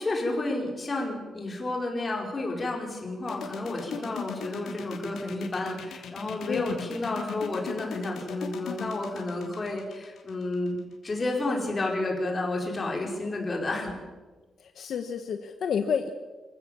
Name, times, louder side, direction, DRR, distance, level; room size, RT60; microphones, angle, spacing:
voice 1, 0.0-10.8 11.0-14.0, left 2 dB, 25° left, 0 dB, 4.7 m, -31 dB
sound 1, 3.3-11.0, left 6 dB, 85° left, 3.0 m, -39 dB
voice 2, 14.6-16.1, left 7 dB, 65° left, 7 dB, 1.2 m, -29 dB
24.5 x 16.0 x 7.0 m, 1.3 s
wide cardioid pair, 160°, 0 cm